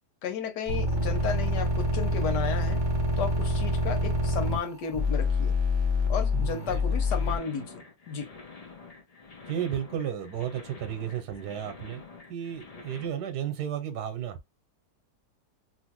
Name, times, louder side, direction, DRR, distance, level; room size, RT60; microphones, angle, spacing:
voice 1, 0.2-2.8 3.2-5.5 6.1-8.3, left 7 dB, 90° left, 1.5 m, -33 dB
sound 1, 0.7-7.4, left 2 dB, 35° right, 0.4 m, -26 dB
voice 2, 6.3-7.0 9.5-12.0 12.3-14.4, right 9 dB, 85° right, 1.3 m, -33 dB
sound 2, 6.5-13.1, left 4 dB, 55° left, 0.4 m, -48 dB
3.1 x 2.5 x 3.0 m
omnidirectional pair, 1.7 m